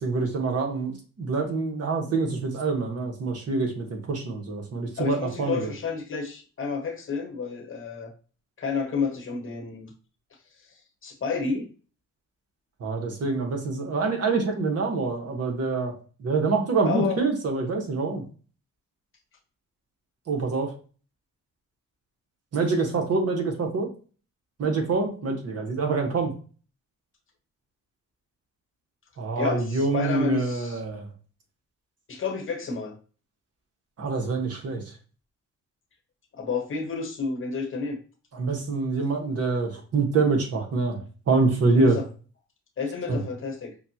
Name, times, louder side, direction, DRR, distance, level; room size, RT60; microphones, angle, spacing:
voice 1, 0.0-5.7 12.8-15.9 16.2-18.2 20.3-20.7 22.5-23.9 24.6-26.3 29.2-31.1 34.0-34.8 38.3-42.0 43.1-43.2, right 3 dB, 55° right, 3 dB, 1.2 m, -26 dB
voice 2, 5.0-8.1 8.6-9.9 11.0-11.7 16.8-17.2 29.4-30.8 32.1-32.9 36.3-38.0 41.7-42.1 42.8-43.7, left 5 dB, 45° left, 4 dB, 1.1 m, -30 dB
5.7 x 2.3 x 2.8 m, 0.39 s
cardioid pair, 90°, 30 cm